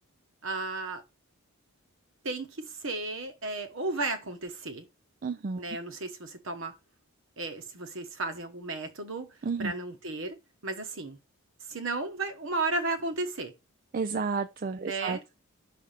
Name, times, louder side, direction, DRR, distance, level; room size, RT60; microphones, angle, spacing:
voice 1, 0.4-1.0 2.2-4.9 5.6-6.7 7.4-10.3 10.6-11.2 11.7-13.5 14.8-15.2, right 3 dB, 60° right, 1.1 m, -34 dB
voice 2, 5.2-5.6 9.4-9.7 13.9-15.3, right 4 dB, 40° right, 0.4 m, -31 dB
6.0 x 3.5 x 5.8 m
head